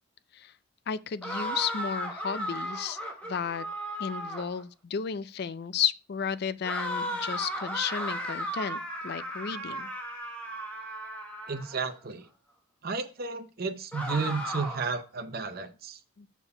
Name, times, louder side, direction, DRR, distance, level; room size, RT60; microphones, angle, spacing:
voice 1, 0.9-3.7 4.0-9.9 16.2-16.3, left 7 dB, 50° left, 0.4 m, -33 dB
sound 1, 1.2-4.6 6.6-11.9 13.9-15.0, equal, 5° left, 1.3 m, -35 dB
voice 2, 11.5-12.2 12.8-16.0, right 4 dB, 45° right, 0.6 m, -33 dB
6.9 x 4.5 x 5.4 m
head